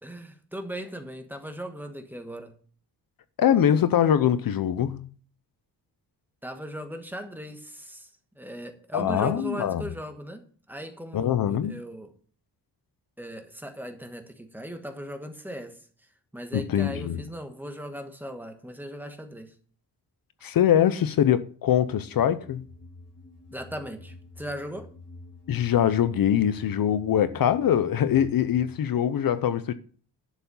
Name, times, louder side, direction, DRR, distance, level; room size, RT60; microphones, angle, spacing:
voice 1, 0.0-2.6 6.4-8.1 8.3-12.1 13.2-15.8 16.3-19.5 23.5-24.9, equal, 5° right, 1.3 m, -38 dB
voice 2, 3.4-5.1 8.9-9.9 11.1-11.8 16.5-17.2 20.4-22.7 25.5-29.7, left 9 dB, 60° left, 0.7 m, -23 dB
sound 1, 22.0-28.8, left 2 dB, 40° left, 2.9 m, -48 dB
11.5 x 7.0 x 5.4 m
wide cardioid pair, 170°, 40 cm